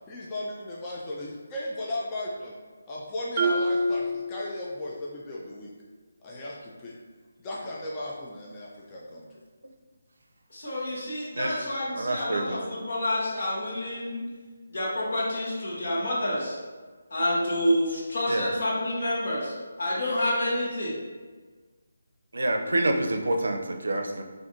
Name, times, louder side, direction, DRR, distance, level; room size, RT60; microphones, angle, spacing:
voice 1, 0.1-2.5 2.9-5.7 6.2-6.9 7.4-9.4, left 1 dB, 20° left, -5 dB, 0.4 m, -36 dB
Marimba xylophone, 3.4-5.1, right 1 dB, 30° right, 0.6 m, -28 dB
voice 2, 10.5-14.2 14.7-16.6 17.1-21.0, left 1 dB, 60° left, -5 dB, 1.1 m, -28 dB
voice 3, 12.0-12.6 18.3-18.5 22.3-24.2, right 1 dB, 80° right, 4 dB, 0.4 m, -27 dB
2.5 x 2.5 x 3.6 m, 1.4 s
figure-of-eight pair, 160°, 0 cm